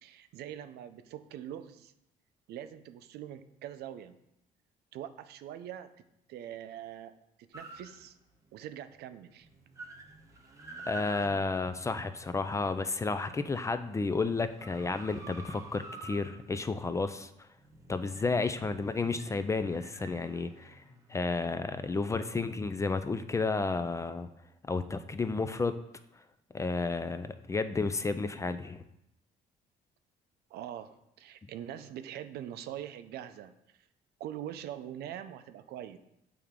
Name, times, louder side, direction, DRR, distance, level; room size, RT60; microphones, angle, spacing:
voice 1, 0.0-1.9 2.5-4.2 4.9-5.9 6.3-7.1 7.5-8.2 8.5-9.5 11.0-11.5 30.5-33.5 34.2-36.0, right 11 dB, 70° right, 11 dB, 0.5 m, -43 dB
sound 1, 7.5-8.5 8.9-9.0 9.3-12.9 13.4-21.9, right 2 dB, 20° right, 1.0 m, -50 dB
voice 2, 10.9-17.5 17.9-20.8 21.1-24.3 24.7-25.8 26.5-28.8, left 3 dB, 20° left, 11 dB, 0.3 m, -32 dB
8.4 x 3.4 x 3.6 m, 0.83 s
cardioid pair, 110°, 17 cm